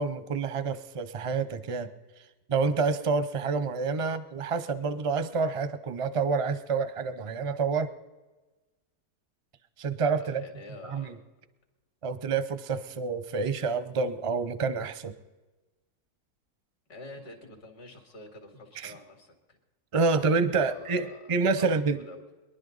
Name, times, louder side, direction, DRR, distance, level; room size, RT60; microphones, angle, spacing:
voice 1, 0.0-1.9 2.5-7.9 9.8-10.4 10.9-11.1 12.0-15.1 18.8-18.9 19.9-22.0, right 4 dB, 40° right, 12 dB, 0.4 m, -28 dB
voice 2, 10.2-11.2 12.8-13.0 16.9-19.6 20.0-22.2, left 2 dB, 75° left, 4 dB, 2.8 m, -48 dB
23.0 x 11.5 x 4.0 m, 1.2 s
omnidirectional pair, 1.7 m